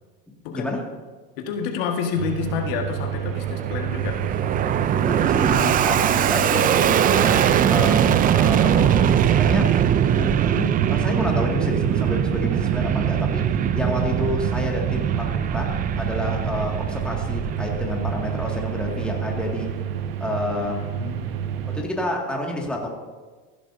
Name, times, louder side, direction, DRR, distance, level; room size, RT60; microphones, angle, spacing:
voice 1, 0.5-0.9 5.0-9.8 10.1-19.7 20.2-20.9 21.6-22.9, left 1 dB, 5° left, -1 dB, 2.1 m, -29 dB
voice 2, 1.4-4.2 21.0-21.7, left 6 dB, 75° left, 2 dB, 1.7 m, -29 dB
sound 1, 2.2-21.8, right 9 dB, 90° right, 1.0 m, -30 dB
Fixed-wing aircraft airplane, 3.1-19.7, right 9 dB, 30° right, 0.5 m, -22 dB
15.5 x 11.0 x 2.7 m, 1.4 s
supercardioid pair, 115°, 29 cm